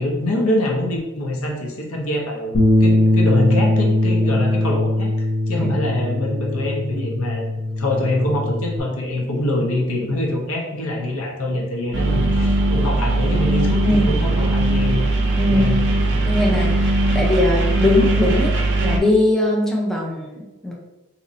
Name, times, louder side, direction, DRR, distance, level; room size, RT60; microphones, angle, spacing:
voice 1, 0.0-7.5 7.8-15.0 15.5-15.8 16.1-16.2, left 1 dB, 70° left, 0 dB, 0.8 m, -24 dB
Bass guitar, 2.5-8.8, left 1 dB, 40° left, 0.7 m, -20 dB
sound 1, 11.9-19.0, right 2 dB, 55° right, 0.6 m, -19 dB
voice 2, 15.4-15.7 16.3-20.7, left 1 dB, ahead, -2 dB, 0.4 m, -21 dB
2.9 x 2.5 x 4.1 m, 1.0 s
head